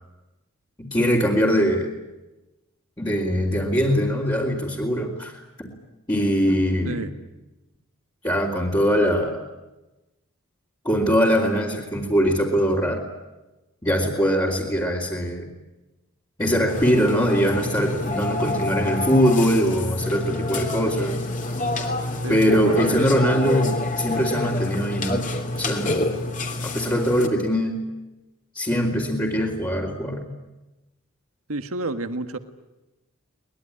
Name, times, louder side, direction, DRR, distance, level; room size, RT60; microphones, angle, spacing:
voice 1, 0.8-1.9 3.0-5.7 6.1-7.0 8.2-9.4 10.8-13.1 13.8-15.4 16.4-21.4 22.3-25.3 25.5-26.3 26.6-27.8 28.5-30.2, equal, 20° left, -5 dB, 3.2 m, -22 dB
Burping eructation, 16.7-27.3, left 2 dB, 35° left, 3.0 m, -27 dB
voice 2, 22.2-22.8 31.5-32.4, right 2 dB, 70° right, 8 dB, 1.6 m, -29 dB
23.0 x 20.5 x 10.0 m, 1.0 s
head